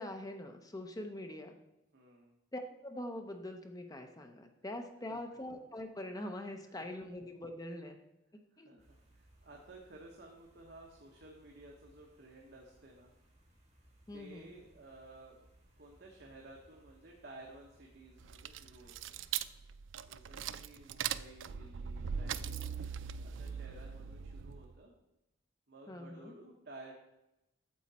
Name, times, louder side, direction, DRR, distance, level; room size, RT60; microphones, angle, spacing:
voice 1, 0.0-1.6 2.5-8.0 8.6-8.8 14.1-14.5 25.9-26.3, left 1 dB, 20° left, 5 dB, 0.7 m, -43 dB
voice 2, 1.9-2.3 5.1-5.2 8.5-13.1 14.1-15.4 15.8-19.2 20.0-22.6 23.2-24.9 25.7-27.0, right 2 dB, 55° right, 0 dB, 1.2 m, -54 dB
sound 1, 8.8-19.2, right 1 dB, 35° right, 3.4 m, -65 dB
sound 2, 18.2-24.8, right 8 dB, 75° right, 0.4 m, -40 dB
9.3 x 7.2 x 4.2 m, 0.91 s
head